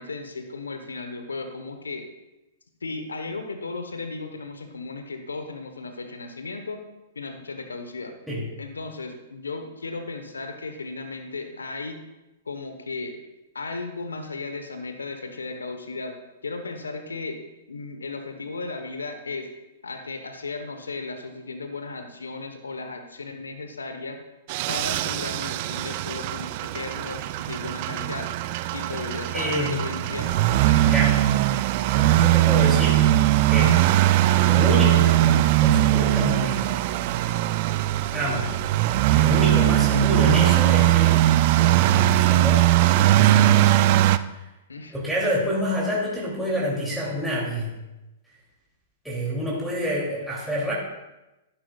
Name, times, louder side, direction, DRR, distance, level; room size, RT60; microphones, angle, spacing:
voice 1, 0.0-2.1 2.8-6.8 7.1-8.1 8.6-12.0 12.5-13.2 13.5-17.4 17.7-19.5 19.8-24.2 24.7-28.3 28.7-30.8 44.7-44.9, left 3 dB, 85° left, 6 dB, 1.0 m, -35 dB
sound 1, 24.5-44.2, right 14 dB, 45° right, 0.4 m, -20 dB
voice 2, 29.3-30.1 30.7-31.1 31.9-33.0 33.5-33.8 34.3-36.8 38.1-38.5 39.1-41.2 41.6-43.8 44.3-44.4 44.9-47.7 49.0-50.7, equal, 5° right, -7 dB, 2.7 m, -28 dB
11.5 x 11.0 x 2.3 m, 0.99 s
hypercardioid pair, 110°, 0 cm